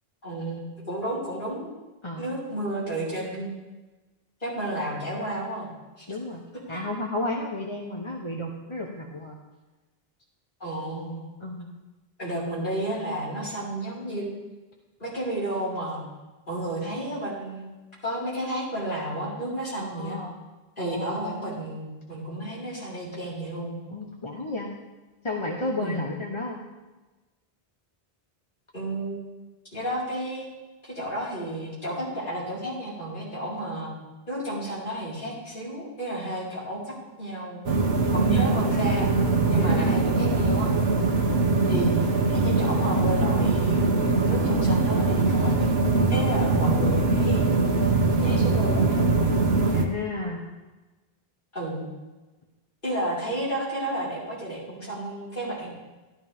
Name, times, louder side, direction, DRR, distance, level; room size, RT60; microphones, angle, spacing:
voice 1, 0.2-1.7 2.2-3.5 4.4-5.7 6.0-6.1 6.7-6.8 10.6-11.2 12.2-14.3 15.0-16.0 16.5-17.7 18.0-20.2 20.8-23.7 25.8-26.0 28.7-29.2 29.7-30.5 30.8-33.9 34.3-37.6 38.1-39.1 39.5-40.7 41.7-45.7 46.1-47.6 48.1-49.3 51.5-51.9 52.8-55.7, right 1 dB, 50° left, -8 dB, 5.2 m, -32 dB
voice 2, 2.0-2.4 6.1-6.4 6.7-9.4 11.4-11.7 19.8-20.3 20.8-21.2 23.9-24.7 25.2-26.6 39.6-39.9 49.7-50.4, left 2 dB, 30° left, 0 dB, 1.1 m, -32 dB
sound 1, 37.7-49.9, right 3 dB, 75° right, 1.3 m, -22 dB
14.0 x 13.0 x 3.6 m, 1.2 s
omnidirectional pair, 1.0 m